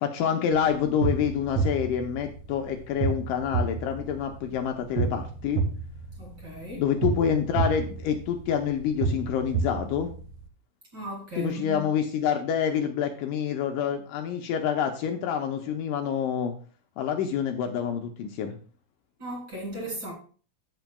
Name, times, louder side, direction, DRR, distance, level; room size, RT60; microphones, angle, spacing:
voice 1, 0.0-5.6 6.8-10.1 11.4-16.5 17.0-18.5, left 8 dB, 80° left, 2.1 m, -27 dB
sound 1, 0.5-10.5, right 4 dB, 75° right, 1.6 m, -31 dB
voice 2, 6.2-6.9 10.9-11.9 19.2-20.1, right 1 dB, 35° right, 2.5 m, -36 dB
15.0 x 5.3 x 2.2 m
omnidirectional pair, 4.1 m